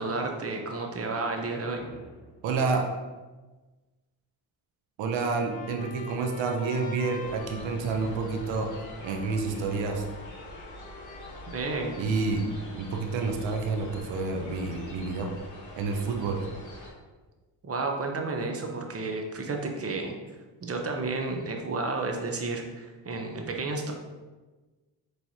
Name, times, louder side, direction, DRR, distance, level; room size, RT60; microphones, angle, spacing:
voice 1, 0.0-1.8 11.5-12.0 17.6-20.2 20.6-23.9, right 3 dB, 30° right, 2 dB, 0.8 m, -31 dB
sound 1, 1.8-2.8, left 2 dB, 60° left, 0.9 m, -50 dB
voice 2, 2.4-2.8 5.0-8.7 9.0-10.0 12.0-12.5 12.7-15.3 15.8-16.4, right 4 dB, 70° right, 3 dB, 0.7 m, -29 dB
Trumpet, 5.2-12.5, left 5 dB, 20° left, 0.3 m, -47 dB
sound 2, 7.2-16.9, left 1 dB, 40° left, 1.3 m, -45 dB
4.4 x 3.2 x 2.8 m, 1.2 s
supercardioid pair, 55°, 47 cm